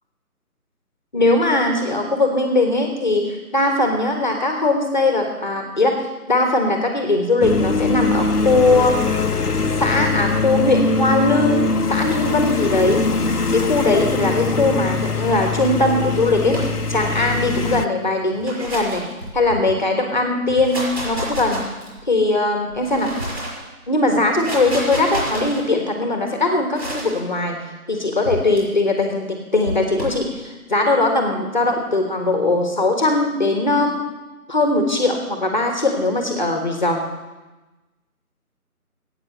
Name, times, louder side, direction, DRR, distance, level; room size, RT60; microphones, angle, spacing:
voice 1, 1.1-9.0 9.8-16.6 16.9-19.0 19.3-21.6 22.1-23.1 23.9-27.6 27.9-34.0 34.5-37.1, left 2 dB, 30° left, 3 dB, 1.5 m, -20 dB
sound 1, 7.4-17.9, left 4 dB, 80° left, 1.0 m, -22 dB
sound 2, 16.5-17.1 18.2-19.7 20.4-22.1 22.7-23.6 24.2-25.6 26.7-27.2 28.2-28.6 29.6-30.2, right 1 dB, 45° right, 5.7 m, -30 dB
14.5 x 8.9 x 8.0 m, 1.1 s
figure-of-eight pair, 160°, 45 cm